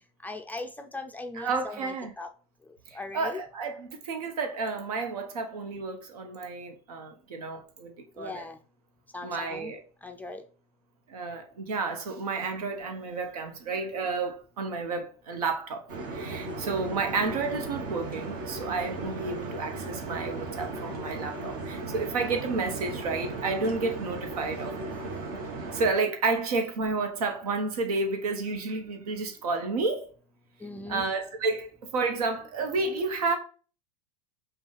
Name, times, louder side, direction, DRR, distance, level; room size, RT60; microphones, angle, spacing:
voice 1, 0.2-2.3 2.7-3.4 8.2-8.6 9.1-9.7 10.0-10.4 30.6-31.1, left 3 dB, 10° left, 0.4 m, -39 dB
voice 2, 1.3-2.1 2.9-8.5 9.2-9.8 11.1-15.8 16.1-24.9 25.7-30.1 30.9-33.4, right 3 dB, 80° right, 1.0 m, -31 dB
sound 1, 15.9-25.9, right 2 dB, 55° right, 1.2 m, -36 dB
5.2 x 2.4 x 3.2 m
hypercardioid pair, 105°, 19 cm